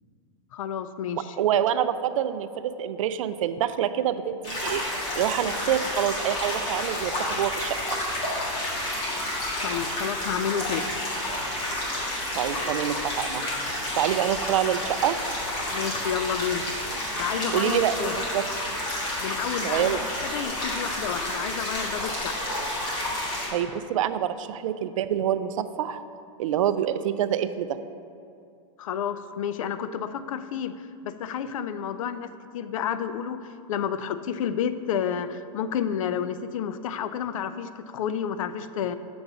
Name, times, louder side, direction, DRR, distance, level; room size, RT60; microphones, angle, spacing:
voice 1, 0.5-1.4 9.6-11.1 15.7-16.7 17.2-18.2 19.2-22.4 28.8-38.9, left 8 dB, 85° left, 12 dB, 0.4 m, -30 dB
voice 2, 1.4-4.8 5.2-8.0 12.3-13.4 14.0-15.2 17.5-18.4 19.6-20.0 23.5-26.0 26.4-27.8, right 10 dB, 80° right, 12 dB, 0.4 m, -26 dB
sound 1, 4.4-23.5, left 1 dB, 30° left, 1.8 m, -30 dB
6.9 x 3.9 x 6.0 m, 2.5 s
supercardioid pair, 160°, 17 cm